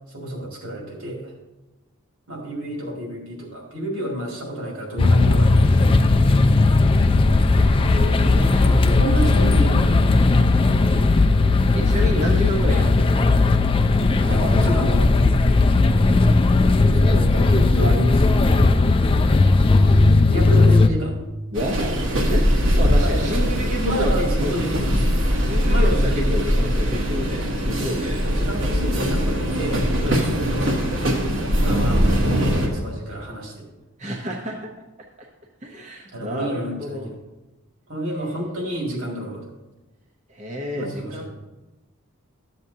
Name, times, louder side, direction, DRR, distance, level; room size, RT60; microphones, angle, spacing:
voice 1, 0.1-1.3 2.3-5.9 6.9-7.2 8.6-10.1 11.6-11.8 12.2-12.3 14.2-15.1 16.9-18.7 20.3-21.1 22.9-24.8 25.6-26.4 27.7-27.9 28.2-29.8 30.3-30.7 31.6-33.6 36.1-37.2 37.9-39.5 40.7-41.3, right 1 dB, 80° right, -1 dB, 2.3 m, -29 dB
sound 1, 5.0-20.9, left 3 dB, 25° left, 0.3 m, -17 dB
voice 2, 7.8-9.0 11.8-13.2 14.2-14.7 20.4-20.5 21.5-24.1 24.4-24.6 25.4-28.2 30.0-30.2 34.0-34.7 35.2-35.3 35.6-37.1 40.3-41.3, equal, 35° right, -1 dB, 0.8 m, -30 dB
sound 2, 21.6-32.7, equal, 60° right, 1.2 m, -21 dB
12.0 x 7.5 x 2.7 m, 1.0 s
head